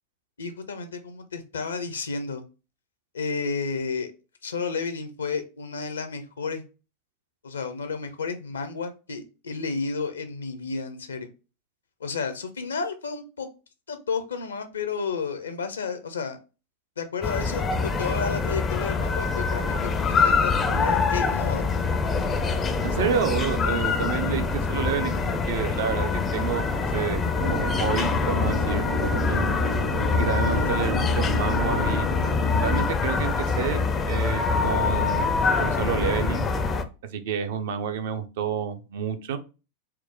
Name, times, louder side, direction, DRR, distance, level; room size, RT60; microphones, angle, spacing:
voice 1, 0.4-2.4 3.1-4.1 4.4-6.6 7.4-11.3 12.0-13.5 13.9-16.4 17.0-21.8 30.6-30.7, left 5 dB, 70° left, 9 dB, 0.6 m, -32 dB
sound 1, 17.2-36.8, left 4 dB, 20° left, 0.4 m, -25 dB
voice 2, 22.8-29.6 30.1-32.1 32.6-36.5 37.1-39.4, right 7 dB, 55° right, 8 dB, 0.5 m, -29 dB
sound 2, 27.3-32.8, left 1 dB, 80° right, 1.3 m, -31 dB
4.4 x 2.1 x 3.6 m, 0.31 s
figure-of-eight pair, 90°, 0 cm